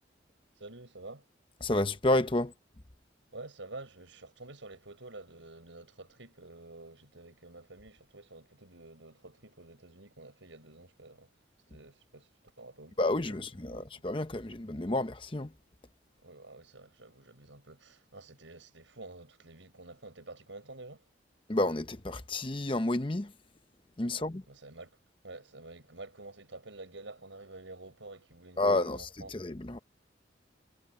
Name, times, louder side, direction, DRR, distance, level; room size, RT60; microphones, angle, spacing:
voice 1, 0.6-1.3 3.3-11.3 11.7-12.3 12.6-13.0 13.3-13.4 13.7-13.9 16.2-21.0 24.1-24.9 25.2-29.3, right 2 dB, 90° right, 6.3 m, -49 dB
voice 2, 1.6-2.5 13.0-15.6 21.5-23.3 24.0-24.4 28.6-29.8, left 2 dB, 25° left, 0.9 m, -30 dB
head